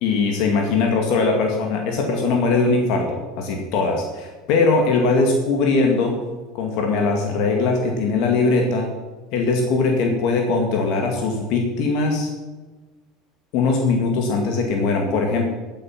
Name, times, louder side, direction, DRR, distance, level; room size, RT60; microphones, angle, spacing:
voice 1, 0.0-6.2 6.6-8.9 9.3-12.3 13.5-15.4, left 3 dB, 60° left, 2 dB, 2.3 m, -20 dB
15.0 x 8.5 x 6.0 m, 1.2 s
cardioid pair, 150°, 0 cm